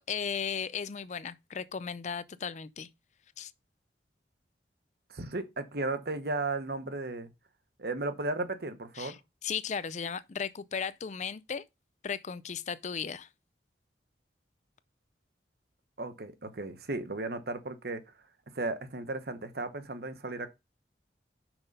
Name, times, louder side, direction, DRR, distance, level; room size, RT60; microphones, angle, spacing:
voice 1, 0.0-2.9 3.4-3.5 9.0-9.2 9.4-11.6 12.0-13.3, left 6 dB, 40° left, 0.4 m, -36 dB
voice 2, 5.1-7.3 7.8-9.1 16.0-18.0 18.5-20.5, right 2 dB, 60° right, 1.0 m, -35 dB
6.0 x 5.3 x 5.3 m
head